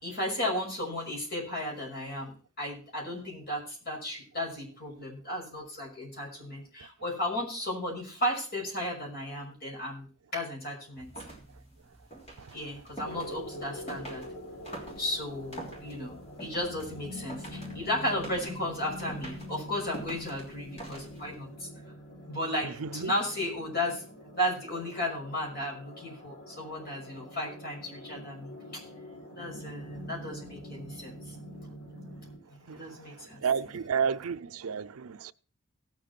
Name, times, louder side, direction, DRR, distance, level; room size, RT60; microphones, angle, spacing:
voice 1, 0.0-10.1 10.3-11.1 12.5-14.3 15.0-16.1 16.4-21.7 22.3-24.0 24.4-28.5 29.3-31.2 32.5-33.4 33.7-33.8, left 1 dB, 45° left, 6.0 m, -34 dB
sound 1, 10.9-21.5, right 1 dB, 30° left, 3.3 m, -46 dB
sound 2, 13.0-32.4, equal, 70° left, 5.9 m, -45 dB
voice 2, 22.6-23.1 32.7-35.3, right 6 dB, 80° right, 0.5 m, -32 dB
17.5 x 7.7 x 4.4 m
head